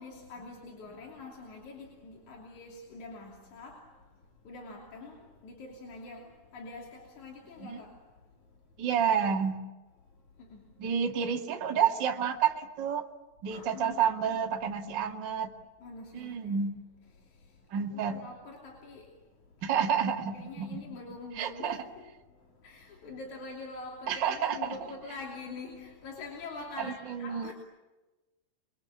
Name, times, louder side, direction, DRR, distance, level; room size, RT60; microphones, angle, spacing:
voice 1, 0.0-4.0 4.4-8.1 10.4-10.7 13.5-14.4 15.8-16.6 17.3-17.5 17.8-19.1 19.6-22.1 22.4-27.5, left 3 dB, 40° left, 3.6 m, -45 dB
voice 2, 8.8-9.6 10.8-13.0 13.4-15.5 16.1-16.7 17.7-18.2 19.6-20.8 21.3-21.8 24.1-24.7 26.8-27.5, right 7 dB, 55° right, 1.2 m, -29 dB
28.5 x 23.0 x 8.6 m
omnidirectional pair, 6.0 m